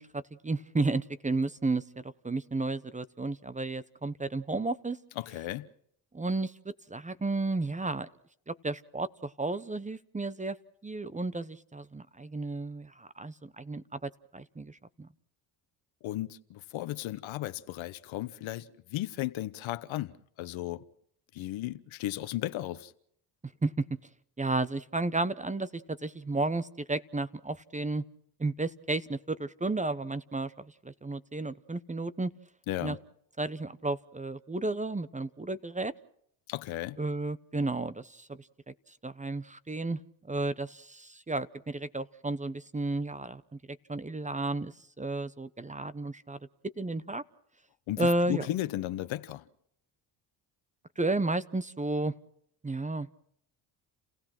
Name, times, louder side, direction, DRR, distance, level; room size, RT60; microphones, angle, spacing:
voice 1, 0.0-5.0 6.1-8.1 8.5-10.6 10.8-15.1 23.6-23.8 24.4-28.0 28.4-32.3 32.8-33.0 33.4-35.9 37.0-38.7 39.0-40.0 40.3-43.4 43.7-46.4 46.6-47.2 48.0-48.5 51.0-52.1 52.6-53.1, right 2 dB, 15° right, 0.9 m, -33 dB
voice 2, 5.2-5.7 16.0-20.8 21.3-22.9 32.7-33.0 36.5-37.0 47.9-49.4, left 15 dB, 70° left, 1.1 m, -35 dB
30.0 x 16.0 x 6.0 m
supercardioid pair, 65°, 49 cm